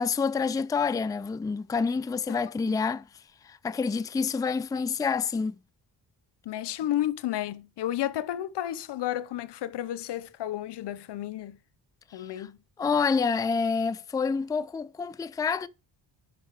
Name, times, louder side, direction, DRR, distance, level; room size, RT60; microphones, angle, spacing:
voice 1, 0.0-3.1 3.4-5.6 12.1-12.5 12.8-15.7, left 5 dB, 10° left, 0.4 m, -28 dB
voice 2, 6.5-11.6 12.1-12.6, left 12 dB, 75° left, 0.8 m, -32 dB
10.5 x 5.4 x 4.8 m
cardioid pair, 100°, 41 cm